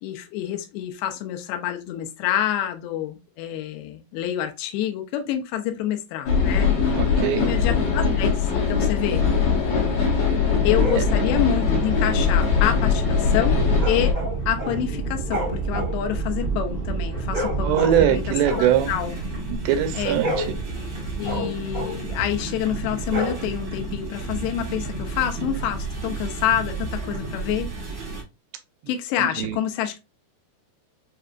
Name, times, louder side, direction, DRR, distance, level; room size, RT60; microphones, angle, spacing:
voice 1, 0.0-6.7 7.3-9.2 10.6-14.2 14.5-18.2 18.6-19.1 19.9-20.2 21.2-27.7 28.9-30.0, left 11 dB, 85° left, 2.7 m, -27 dB
sound 1, 6.3-14.1, left 5 dB, 60° left, 1.8 m, -21 dB
voice 2, 6.9-7.5 17.6-19.0 19.5-20.5 29.2-29.6, right 10 dB, 85° right, 2.7 m, -22 dB
sound 2, 10.6-28.2, right 4 dB, 60° right, 0.9 m, -30 dB
sound 3, 10.8-11.1 13.7-14.8 15.1-18.1 18.4-19.7 20.0-22.1 23.0-23.8, equal, 40° right, 0.5 m, -31 dB
6.5 x 2.5 x 2.3 m
omnidirectional pair, 4.8 m